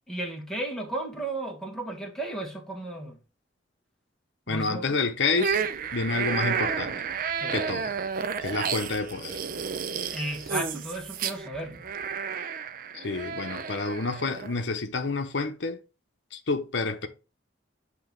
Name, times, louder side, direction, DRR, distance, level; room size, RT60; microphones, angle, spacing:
voice 1, 0.1-3.2 4.5-5.0 7.4-7.5 10.1-11.8, right 1 dB, 5° left, 1.3 m, -34 dB
voice 2, 4.5-5.6 5.9-7.0 7.5-7.9 8.4-9.4 12.9-15.8 16.3-17.1, left 3 dB, 70° left, 0.8 m, -29 dB
sound 1, 5.4-14.5, right 6 dB, 50° right, 0.5 m, -31 dB
7.8 x 2.9 x 5.1 m
head